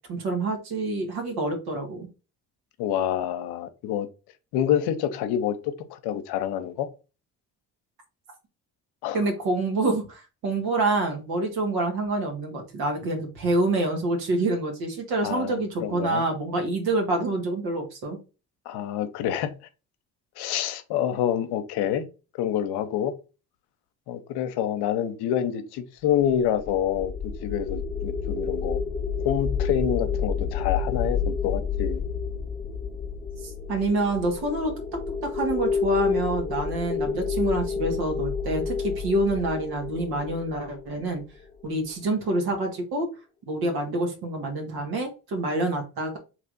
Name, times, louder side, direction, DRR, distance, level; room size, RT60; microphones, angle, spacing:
voice 1, 0.1-2.1 9.1-18.2 33.7-34.7 35.2-41.2 41.6-43.1 43.5-46.2, right 2 dB, 70° right, 1.5 m, -27 dB
voice 2, 2.8-4.1 4.5-6.9 9.0-9.2 15.2-16.2 18.7-19.5 20.4-22.0 22.4-23.1 24.1-27.1 27.4-28.8 29.2-32.0, left 10 dB, 80° left, 0.7 m, -27 dB
sound 1, 26.6-41.4, left 5 dB, 15° left, 0.8 m, -30 dB
3.3 x 2.9 x 3.9 m
supercardioid pair, 65°, 39 cm